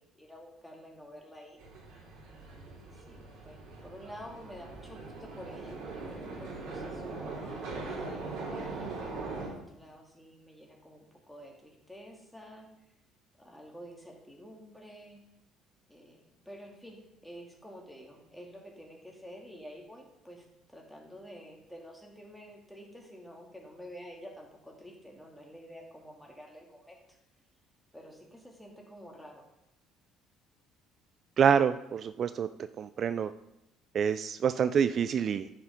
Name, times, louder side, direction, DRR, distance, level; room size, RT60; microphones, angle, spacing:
voice 1, 0.0-1.6 2.5-12.7 13.3-15.2 15.9-27.2 27.9-29.4, equal, 5° left, 0 dB, 2.5 m, -49 dB
sound 1, 1.6-9.5, right 3 dB, 70° right, 2.9 m, -41 dB
voice 2, 31.4-32.5 32.8-33.3 33.9-35.5, right 7 dB, 50° right, 13 dB, 0.3 m, -26 dB
9.6 x 5.9 x 5.1 m, 0.85 s
supercardioid pair, 70°, 0 cm